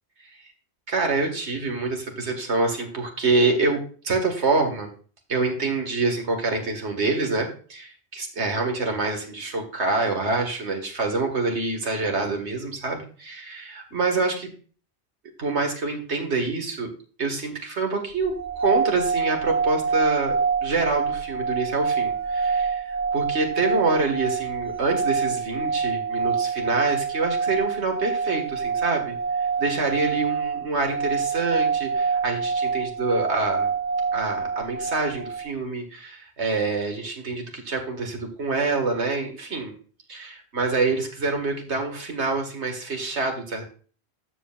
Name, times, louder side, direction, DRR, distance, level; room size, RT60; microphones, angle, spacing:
voice 1, 0.9-4.9 5.3-14.5 15.4-16.9 17.2-18.3 18.6-33.7 34.1-39.7 40.1-43.6, right 3 dB, 85° right, 3 dB, 2.1 m, -26 dB
sound 1, 18.3-35.5, right 5 dB, 15° right, 1.4 m, -26 dB
12.5 x 7.6 x 2.5 m, 0.40 s
omnidirectional pair, 1.1 m